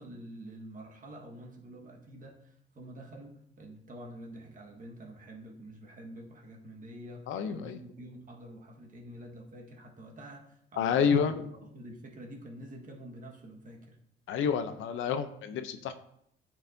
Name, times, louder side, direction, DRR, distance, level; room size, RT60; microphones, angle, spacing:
voice 1, 0.0-11.2 11.6-14.0, right 1 dB, 40° right, 0 dB, 1.6 m, -47 dB
voice 2, 7.3-7.8 10.8-11.4 14.3-15.9, left 7 dB, 85° left, 10 dB, 0.6 m, -29 dB
9.6 x 4.5 x 2.7 m, 0.71 s
cardioid pair, 90°, 20 cm